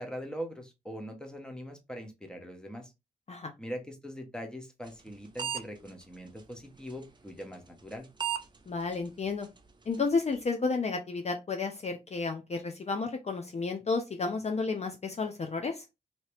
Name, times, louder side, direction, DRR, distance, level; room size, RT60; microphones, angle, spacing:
voice 1, 0.0-2.9 3.6-8.1, equal, 5° left, 4 dB, 0.8 m, -41 dB
sound 1, 4.9-5.1 5.4-5.6 5.9-6.0 6.9-7.0 7.9-8.0 8.2-8.4 8.9-9.0 9.4-9.5 9.9-10.0, right 9 dB, 25° right, 0.5 m, -32 dB
voice 2, 8.7-9.5 9.9-15.8, left 4 dB, 40° left, 5 dB, 0.5 m, -32 dB
2.8 x 2.8 x 3.2 m, 0.24 s
cardioid pair, 85°, 17 cm